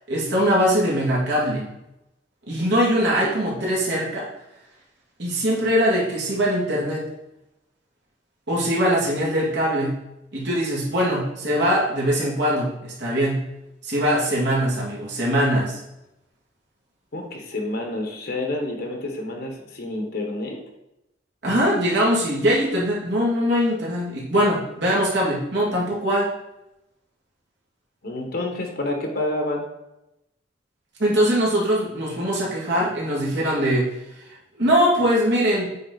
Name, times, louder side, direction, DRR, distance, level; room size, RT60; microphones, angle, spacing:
voice 1, 0.1-1.7 2.5-4.3 5.2-7.0 8.5-9.9 10.3-13.5 13.8-15.8 21.4-26.3 31.0-33.9 34.3-35.7, equal, 65° right, -5 dB, 2.2 m, -22 dB
voice 2, 17.1-20.6 28.0-29.7, left 2 dB, 55° left, 2 dB, 1.3 m, -28 dB
8.5 x 3.9 x 4.0 m, 0.89 s
head